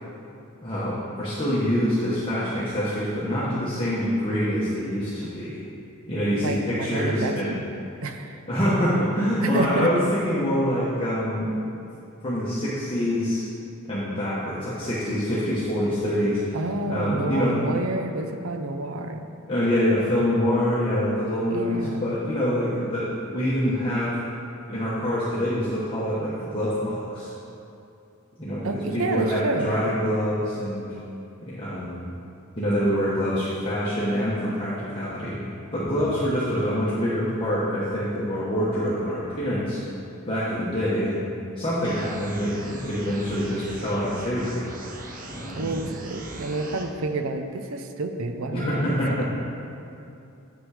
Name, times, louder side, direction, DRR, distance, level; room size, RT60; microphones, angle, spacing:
voice 1, 0.6-5.6 6.1-7.5 8.5-11.5 12.2-13.5 13.9-16.4 16.9-17.8 19.5-24.2 24.7-27.3 28.4-30.9 31.5-32.0 32.6-35.3 35.7-39.8 40.3-41.3 41.6-44.6 45.3-45.8 48.5-49.3, equal, 25° left, -9 dB, 1.2 m, -25 dB
voice 2, 6.4-7.6 8.0-8.4 9.4-9.9 16.5-19.3 21.5-22.2 28.6-29.8 45.5-49.3, right 2 dB, 75° right, 7 dB, 0.6 m, -29 dB
sound 1, 41.8-46.8, right 2 dB, 40° right, 0.7 m, -40 dB
8.1 x 6.2 x 4.9 m, 2.7 s
head